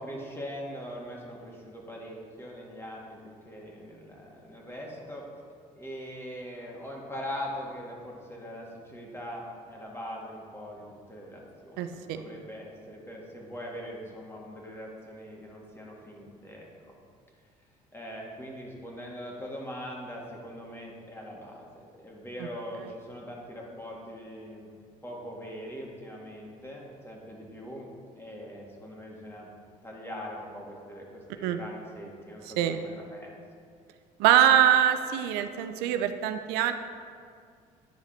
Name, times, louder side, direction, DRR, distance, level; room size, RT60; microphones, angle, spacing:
voice 1, 0.0-5.3 5.8-16.7 17.9-24.7 25.0-27.9 28.2-29.5 29.8-33.4, equal, 15° left, -2 dB, 2.1 m, -41 dB
voice 2, 11.8-12.2 22.4-22.5 31.4-31.6 32.6-32.8 34.2-36.7, right 10 dB, 80° right, 9 dB, 0.5 m, -23 dB
10.5 x 4.7 x 4.4 m, 2.2 s
supercardioid pair, 70°, 17 cm